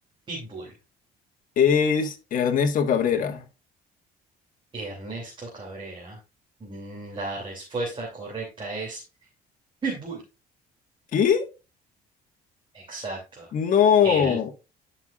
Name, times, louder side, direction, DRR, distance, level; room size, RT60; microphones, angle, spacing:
voice 1, 0.3-0.7 4.7-6.2 6.6-9.0 9.8-10.2 12.7-13.5 14.0-14.4, right 3 dB, 30° right, 2.9 m, -34 dB
voice 2, 1.6-3.4 11.1-11.5 13.5-14.5, left 7 dB, 50° left, 1.6 m, -21 dB
11.5 x 5.7 x 2.4 m
cardioid pair, 110°, 17 cm